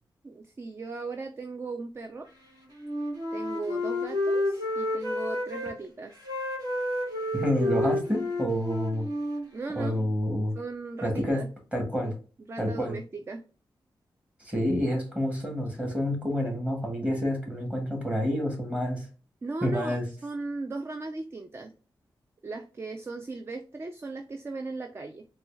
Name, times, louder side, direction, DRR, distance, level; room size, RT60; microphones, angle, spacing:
voice 1, 0.2-2.3 3.3-6.2 9.5-10.0 10.6-11.5 12.0-12.1 12.5-13.4 19.4-21.7 22.4-25.3, right 3 dB, 30° right, 6 dB, 0.4 m, -37 dB
Wind instrument woodwind instrument, 2.8-5.8 6.2-10.1, left 1 dB, 55° right, 1.7 m, -30 dB
voice 2, 7.3-9.1 9.7-10.5 11.0-11.4 11.7-12.1 12.6-12.9 14.4-19.1 19.6-20.0, equal, 15° right, 1 dB, 1.6 m, -28 dB
4.1 x 2.3 x 3.3 m, 0.37 s
wide cardioid pair, 90°, 8 cm